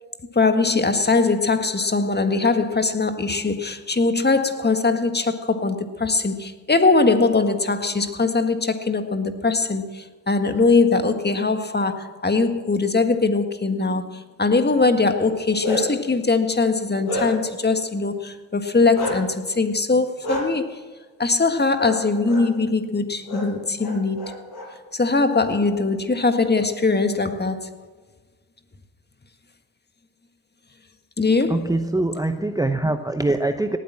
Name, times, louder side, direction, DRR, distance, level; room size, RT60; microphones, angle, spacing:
voice 1, 0.3-20.8 21.2-24.2 24.9-27.7 31.2-31.7, left 3 dB, 20° left, 8 dB, 1.7 m, -21 dB
Bark, 15.3-16.1 16.6-17.6 18.9-19.2 20.2-20.4 21.8-22.0 22.2-22.4 23.3-23.4 23.8-24.6, left 1 dB, 60° left, 6.6 m, -29 dB
voice 2, 31.5-33.8, right 2 dB, 10° right, 8 dB, 0.8 m, -23 dB
18.5 x 9.1 x 7.5 m, 1.4 s
hypercardioid pair, 50°, 44 cm